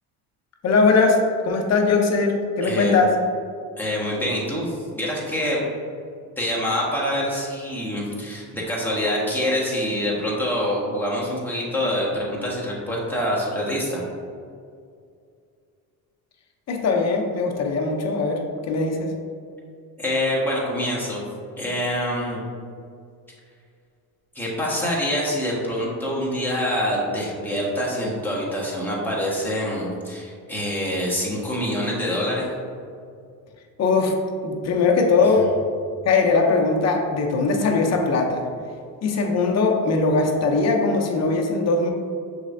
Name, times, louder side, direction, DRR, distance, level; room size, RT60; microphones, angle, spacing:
voice 1, 0.6-3.2 16.7-19.1 33.8-34.1 34.4-35.5 36.0-38.5 39.0-41.9, left 3 dB, 40° left, 2 dB, 0.7 m, -20 dB
voice 2, 2.6-3.0 3.8-5.6 6.4-14.0 20.0-21.2 21.6-22.4 24.3-32.5, equal, 5° left, -6 dB, 1.5 m, -25 dB
6.2 x 3.2 x 2.7 m, 2.3 s
supercardioid pair, 85°, 43 cm